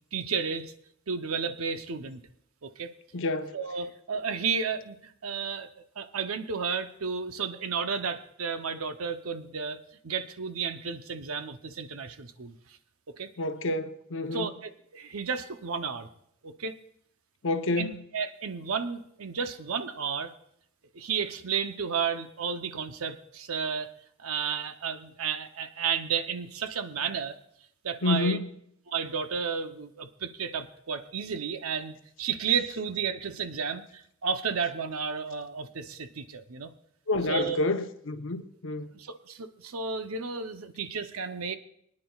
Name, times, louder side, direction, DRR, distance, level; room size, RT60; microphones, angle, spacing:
voice 1, 0.1-0.7 1.1-2.2 2.6-2.9 3.5-9.8 10.0-12.5 13.1-13.3 14.3-16.1 16.4-16.7 17.8-20.3 20.9-23.9 24.2-27.3 27.8-28.4 28.9-36.7 37.3-37.6 38.9-41.6, right 6 dB, 85° right, 0.7 m, -32 dB
voice 2, 3.1-3.5 13.4-14.5 17.4-18.0 28.0-28.5 37.1-38.9, left 2 dB, 65° left, 0.8 m, -29 dB
23.5 x 9.8 x 2.3 m
head